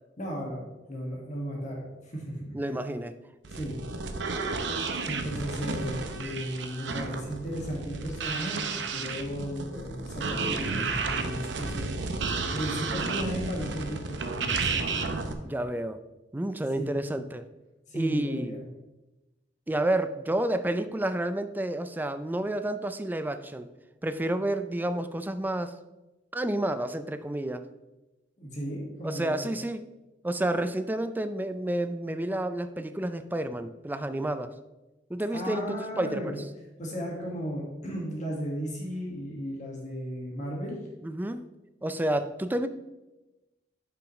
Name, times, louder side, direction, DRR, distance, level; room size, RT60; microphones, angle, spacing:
voice 1, 0.2-0.6 0.9-2.5 3.5-3.8 5.1-14.8 16.7-17.0 17.9-18.7 28.4-29.5 35.3-36.4 36.8-40.8, equal, 45° left, -2 dB, 1.8 m, -35 dB
voice 2, 2.5-3.1 15.4-16.0 16.3-17.5 17.9-18.6 19.7-23.7 24.0-25.7 26.3-27.6 29.0-29.9 30.2-34.5 35.1-36.4 41.0-41.5 41.8-42.7, right 1 dB, 10° right, 11 dB, 0.4 m, -30 dB
sound 1, 3.4-15.3, right 4 dB, 80° right, 0.7 m, -32 dB
9.9 x 5.8 x 3.1 m, 1.0 s
head